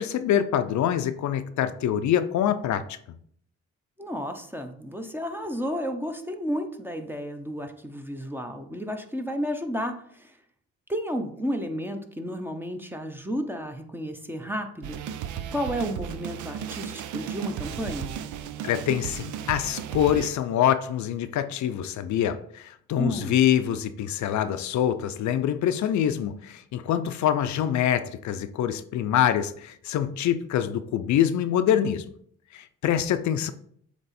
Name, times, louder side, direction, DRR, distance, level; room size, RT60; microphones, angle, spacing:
voice 1, 0.0-2.8 18.6-32.1 32.5-33.5, left 10 dB, 70° left, 0.5 m, -25 dB
voice 2, 4.0-10.4 10.9-15.0 15.5-18.1 23.0-23.4, equal, 5° right, 0.8 m, -32 dB
sound 1, 14.8-20.3, right 8 dB, 80° right, 0.5 m, -35 dB
7.6 x 3.0 x 4.2 m
cardioid pair, 90°, 30 cm